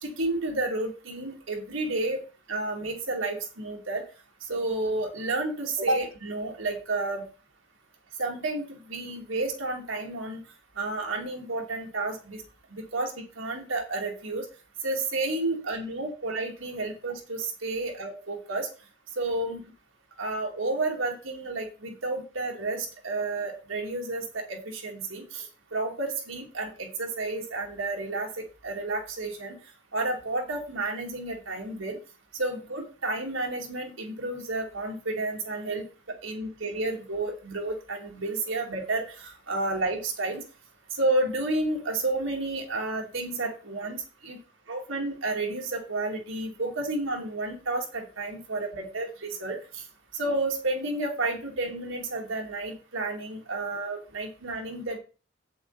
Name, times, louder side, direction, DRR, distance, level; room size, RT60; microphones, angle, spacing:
voice 1, 0.0-2.2 2.5-4.0 4.4-7.2 8.2-10.4 10.8-12.4 12.7-14.5 14.8-18.7 19.2-19.6 20.2-29.6 29.9-32.0 32.4-35.8 36.2-40.4 40.9-44.4 44.7-49.8 50.1-55.0, right 2 dB, 80° right, 1 dB, 2.7 m, -31 dB
8.5 x 7.8 x 4.2 m, 0.34 s
head